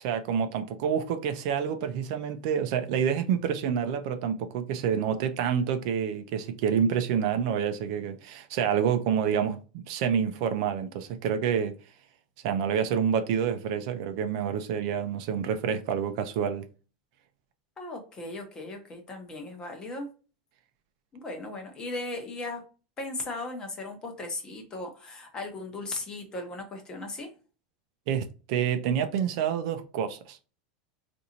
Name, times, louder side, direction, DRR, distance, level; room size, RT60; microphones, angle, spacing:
voice 1, 0.0-11.7 12.4-16.7 28.1-30.4, right 8 dB, 55° right, 0.5 m, -28 dB
voice 2, 17.8-20.1 21.1-22.7 23.0-27.3, left 2 dB, 20° left, 0.8 m, -37 dB
4.0 x 2.6 x 2.8 m
supercardioid pair, 165°, 4 cm